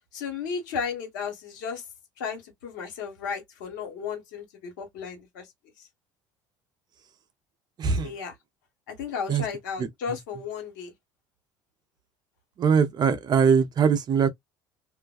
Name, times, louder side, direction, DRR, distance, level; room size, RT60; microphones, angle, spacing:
voice 1, 0.1-1.8 2.2-5.5 5.8-5.9 8.0-8.3 8.9-10.9, left 6 dB, 80° left, 1.1 m, -34 dB
voice 2, 7.8-8.1 9.3-9.4 9.8-9.9 12.6-14.3, right 6 dB, 45° right, 0.6 m, -21 dB
2.5 x 2.2 x 2.3 m
hypercardioid pair, 70°, 10 cm